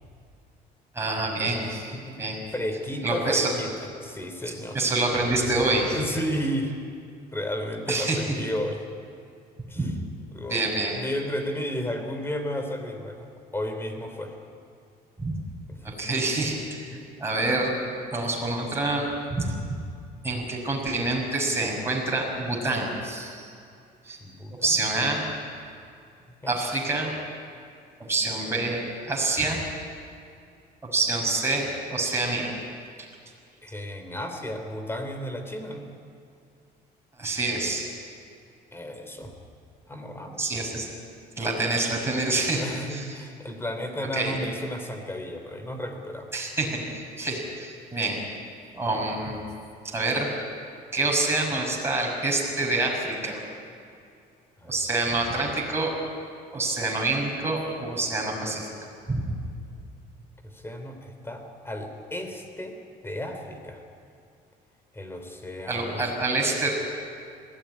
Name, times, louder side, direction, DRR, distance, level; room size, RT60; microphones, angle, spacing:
voice 1, 0.9-2.4 3.0-3.5 4.7-6.0 7.9-8.2 9.8-9.9 10.5-10.9 15.2-15.4 15.8-16.9 17.2-17.8 18.1-19.8 20.2-23.5 24.0-24.2 24.6-25.2 26.5-27.1 28.0-29.6 30.8-32.5 37.2-37.9 40.4-40.9 41.4-42.6 42.9-43.1 44.1-44.4 46.3-46.8 47.2-48.2 48.7-49.4 49.8-50.3 50.9-53.4 54.6-55.9 56.5-58.7 59.1-59.3 65.7-66.7, right 2 dB, 15° right, -2 dB, 6.0 m, -27 dB
voice 2, 2.1-4.8 5.8-6.8 7.3-8.8 9.7-9.9 10.3-10.6 10.9-13.3 13.5-14.4 15.7-15.8 16.9-17.0 24.2-24.9 26.4-26.6 33.6-35.8 38.7-39.3 39.9-40.4 42.5-46.3 54.6-54.9 60.4-62.8 63.0-63.8 64.9-66.1, equal, 15° left, 6 dB, 3.4 m, -33 dB
21.5 x 16.0 x 9.8 m, 2.4 s
cardioid pair, 110°, 17 cm